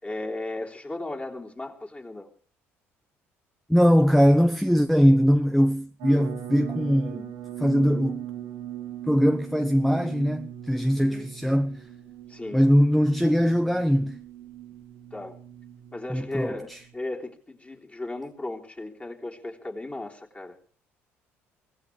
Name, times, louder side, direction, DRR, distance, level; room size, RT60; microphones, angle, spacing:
voice 1, 0.0-2.3 10.9-11.3 12.3-12.6 15.1-15.4 15.9-16.7 16.9-20.6, left 2 dB, 20° left, 3.5 m, -36 dB
voice 2, 3.7-7.3 7.6-8.3 9.1-11.8 12.5-14.2 16.1-16.8, equal, ahead, 0.8 m, -21 dB
sound 1, 6.0-16.9, right 11 dB, 75° right, 2.6 m, -40 dB
24.5 x 17.5 x 3.3 m
hypercardioid pair, 55°, 7 cm